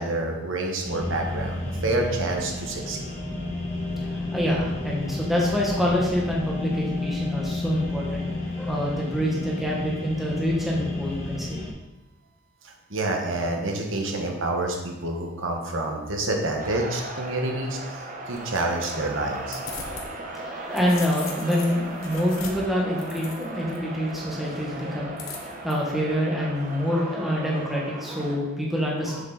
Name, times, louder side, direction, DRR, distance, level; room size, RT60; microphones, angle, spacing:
voice 1, 0.0-3.1 12.6-19.6, right 2 dB, 65° right, 2 dB, 1.3 m, -28 dB
sound 1, 0.8-11.7, left 2 dB, 30° left, 1.8 m, -31 dB
voice 2, 4.0-8.3 8.5-11.7 20.4-25.3 25.6-29.2, equal, ahead, -4 dB, 1.3 m, -26 dB
sound 2, 16.6-28.4, right 2 dB, 40° right, 1.0 m, -37 dB
sound 3, 18.3-20.1 20.5-23.8 25.2-25.7, left 5 dB, 75° left, 1.2 m, -40 dB
7.4 x 7.2 x 4.0 m, 1.0 s
head